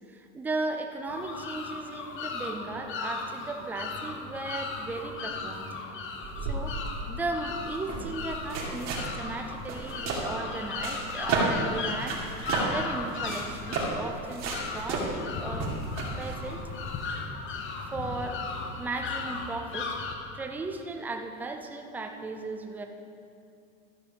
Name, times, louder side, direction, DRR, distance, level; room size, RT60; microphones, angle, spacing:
voice 1, 0.1-5.7 6.4-15.7 16.2-16.6 17.8-18.4 18.8-20.0 20.3-22.9, right 3 dB, 5° right, 4 dB, 0.3 m, -36 dB
sound 1, 1.1-20.1, left 4 dB, 30° left, 0.9 m, -37 dB
sound 2, 6.2-17.1, right 3 dB, 40° right, 2.4 m, -33 dB
13.0 x 6.0 x 5.2 m, 2.5 s
supercardioid pair, 135°, 40 cm